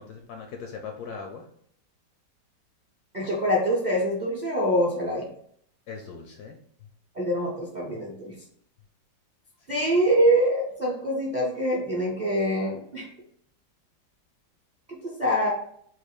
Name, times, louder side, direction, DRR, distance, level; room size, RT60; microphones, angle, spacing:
voice 1, 0.0-1.4 5.9-6.6, left 5 dB, 70° left, 3 dB, 0.9 m, -39 dB
voice 2, 3.1-5.3 7.1-8.3 9.7-13.1 14.9-15.5, equal, 40° right, -4 dB, 0.6 m, -25 dB
4.0 x 2.6 x 4.4 m, 0.66 s
omnidirectional pair, 2.1 m